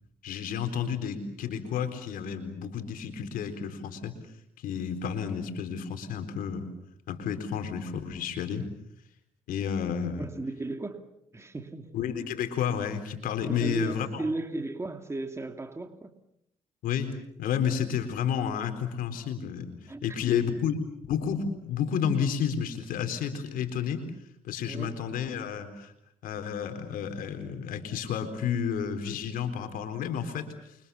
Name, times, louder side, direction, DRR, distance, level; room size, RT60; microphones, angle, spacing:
voice 1, 0.2-4.1 4.6-6.7 7.1-8.7 9.5-10.3 11.9-14.2 16.8-20.8 21.1-24.1 24.4-25.9 26.2-30.8, left 7 dB, 85° left, 8 dB, 4.1 m, -31 dB
voice 2, 10.2-11.0 11.3-12.0 13.5-16.1 19.9-20.0 24.7-25.0, right 2 dB, 20° right, 6 dB, 2.4 m, -35 dB
29.0 x 25.0 x 7.1 m, 0.75 s
cardioid pair, 85°, 14 cm